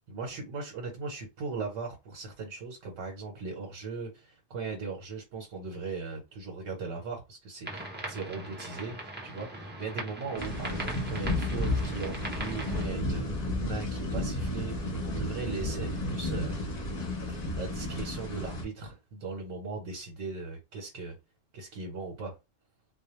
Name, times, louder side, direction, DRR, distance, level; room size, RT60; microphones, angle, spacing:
voice 1, 0.1-14.7 15.0-16.5 17.3-21.1 21.5-22.3, right 4 dB, 80° right, 1.1 m, -38 dB
sound 1, 7.6-12.8, right 2 dB, 15° right, 0.4 m, -40 dB
sound 2, 10.4-18.6, left 1 dB, 40° left, 0.7 m, -32 dB
2.2 x 2.1 x 2.9 m
omnidirectional pair, 1.3 m